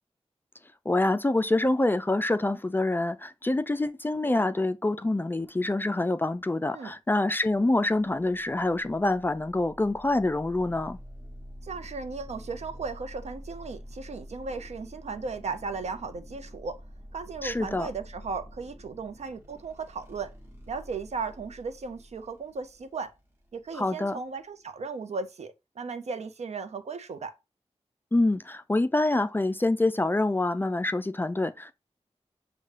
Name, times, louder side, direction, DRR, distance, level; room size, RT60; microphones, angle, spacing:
voice 1, 0.9-11.0 17.4-17.9 23.7-24.2 28.1-31.7, left 2 dB, 20° left, 0.3 m, -26 dB
sound 1, 7.8-24.9, equal, 20° right, 1.0 m, -48 dB
voice 2, 11.6-16.8 17.1-20.3 20.7-23.1 23.5-27.3, right 4 dB, 75° right, 0.5 m, -36 dB
6.4 x 2.2 x 3.2 m
wide cardioid pair, 105°, 11 cm